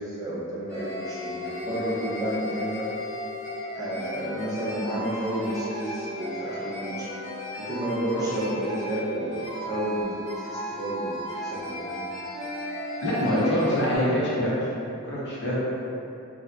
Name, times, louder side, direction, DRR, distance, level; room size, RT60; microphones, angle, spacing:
voice 1, 0.0-2.9 3.7-7.1 7.6-12.0 13.1-13.6, equal, 20° right, -8 dB, 0.5 m, -31 dB
sound 1, 0.7-14.0, equal, 85° left, 1.0 m, -35 dB
voice 2, 13.0-14.5 15.1-15.7, equal, 55° left, -8 dB, 0.8 m, -25 dB
3.3 x 2.6 x 2.3 m, 2.7 s
head